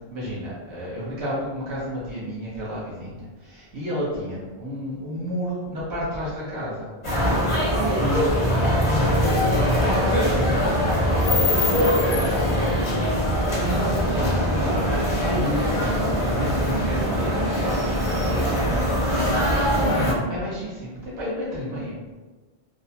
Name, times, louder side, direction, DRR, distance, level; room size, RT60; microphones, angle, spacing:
voice 1, 0.1-6.9 7.2-10.8 11.1-12.8 13.1-22.0, equal, 80° right, -8 dB, 1.1 m, -31 dB
sound 1, 7.0-20.1, equal, 35° left, 0.5 m, -22 dB
2.8 x 2.0 x 2.7 m, 1.3 s
omnidirectional pair, 1.1 m